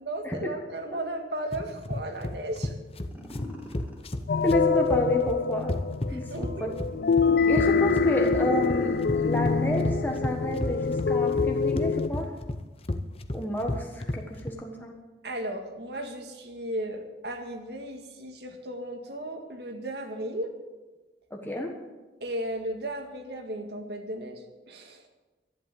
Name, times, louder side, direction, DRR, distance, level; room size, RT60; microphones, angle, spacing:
voice 1, 0.0-2.7 6.1-6.8 15.2-20.5 22.2-25.0, right 1 dB, 65° right, 4 dB, 1.9 m, -35 dB
sound 1, 1.5-14.5, left 1 dB, 30° left, 0.8 m, -33 dB
sound 2, 3.1-4.1 6.5-9.3 10.0-12.4, equal, 10° right, 2.8 m, -44 dB
sound 3, 4.3-12.1, left 5 dB, 55° left, 0.4 m, -25 dB
voice 2, 4.4-5.7 6.1-6.7 7.5-12.3 13.3-15.0 21.3-21.7, left 1 dB, 10° left, 1 dB, 1.3 m, -30 dB
12.0 x 10.5 x 7.8 m, 1.2 s
head